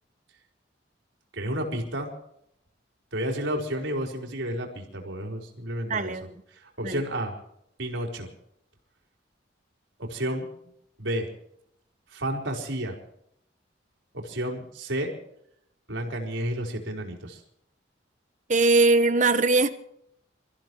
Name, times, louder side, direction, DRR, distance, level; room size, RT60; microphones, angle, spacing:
voice 1, 1.3-2.1 3.1-6.2 6.5-7.3 7.8-8.3 10.0-10.4 11.0-11.3 12.1-12.9 14.1-15.1 15.9-17.4, right 1 dB, 85° right, 1 dB, 4.7 m, -31 dB
voice 2, 5.9-6.3 6.8-7.0 18.5-19.7, right 3 dB, 40° right, 10 dB, 1.3 m, -21 dB
29.0 x 15.5 x 3.2 m, 0.73 s
head